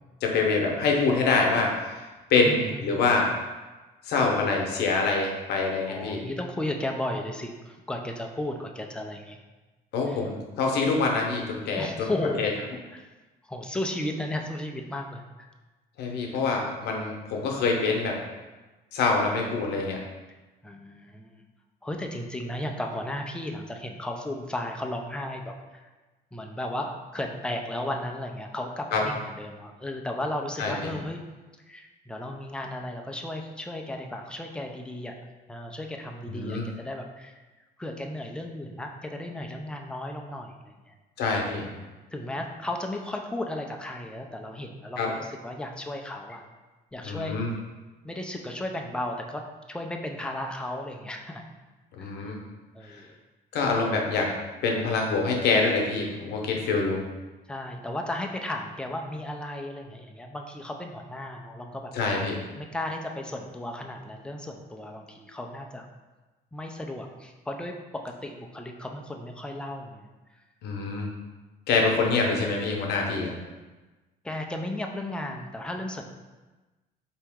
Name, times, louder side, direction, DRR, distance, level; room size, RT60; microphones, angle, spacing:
voice 1, 0.2-2.0 2.3-3.3 4.0-6.2 9.9-12.1 12.4-12.5 16.0-18.2 18.9-20.0 28.9-29.0 30.6-30.9 36.2-36.6 41.2-41.7 45.0-45.1 47.0-47.5 52.0-52.4 52.9-53.0 53.5-54.3 54.6-57.0 61.9-62.3 70.6-71.1 71.7-73.4, left 4 dB, 75° left, 0 dB, 0.8 m, -25 dB
voice 2, 2.4-3.0 5.9-9.4 10.1-10.3 11.8-12.4 12.9-13.1 13.4-15.5 20.6-21.5 21.8-25.9 26.3-31.2 31.7-35.2 35.5-37.4 37.8-40.9 42.1-46.4 46.9-47.6 48.0-51.4 52.0-52.4 52.7-53.1 57.5-61.9 62.6-65.9 66.5-70.1 74.2-76.0, left 1 dB, 5° left, 2 dB, 0.4 m, -35 dB
4.2 x 2.9 x 3.5 m, 1.2 s
cardioid pair, 110°, 17 cm